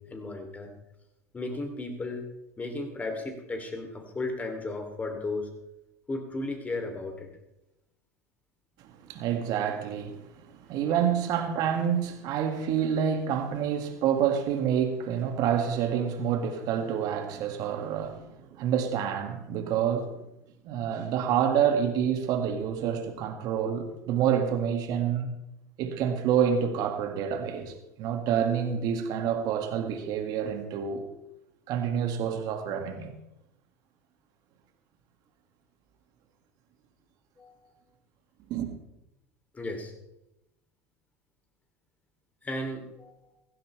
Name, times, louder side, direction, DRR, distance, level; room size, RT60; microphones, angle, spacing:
voice 1, 0.1-0.7 1.3-2.2 2.6-5.5 6.1-7.3 37.4-37.7 39.5-39.9 42.4-43.3, left 2 dB, 20° left, 3.0 m, -35 dB
voice 2, 8.8-20.1 20.6-25.3 25.8-31.0 31.7-33.1 38.5-38.7, right 8 dB, 50° right, 2.1 m, -28 dB
16.0 x 16.0 x 3.4 m
hypercardioid pair, 80°, 8 cm